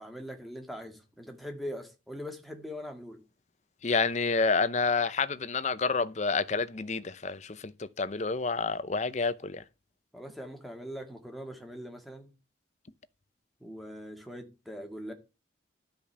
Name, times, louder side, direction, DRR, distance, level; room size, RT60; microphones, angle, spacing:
voice 1, 0.0-3.2 10.1-12.3 13.6-15.1, equal, ahead, 1.9 m, -42 dB
voice 2, 3.8-9.6, left 4 dB, 35° left, 0.6 m, -29 dB
12.5 x 5.2 x 6.9 m
head